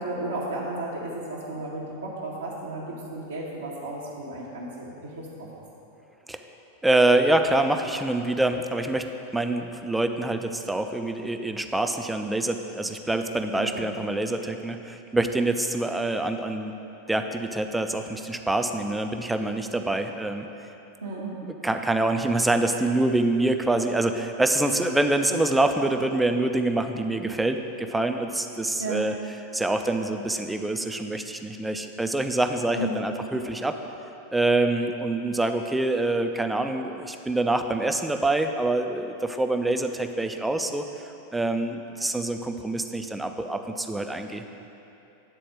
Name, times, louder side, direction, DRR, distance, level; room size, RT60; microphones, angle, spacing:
voice 1, 0.0-5.3 13.6-13.8 21.0-21.4 28.8-29.1 32.7-33.0, right 2 dB, 70° right, -7 dB, 1.0 m, -33 dB
voice 2, 6.8-16.7 17.1-20.5 21.4-29.1 29.5-33.8 34.3-40.8 41.3-44.4, right 2 dB, 5° right, 6 dB, 0.4 m, -25 dB
9.1 x 4.2 x 6.3 m, 2.9 s
figure-of-eight pair, 90°, 0 cm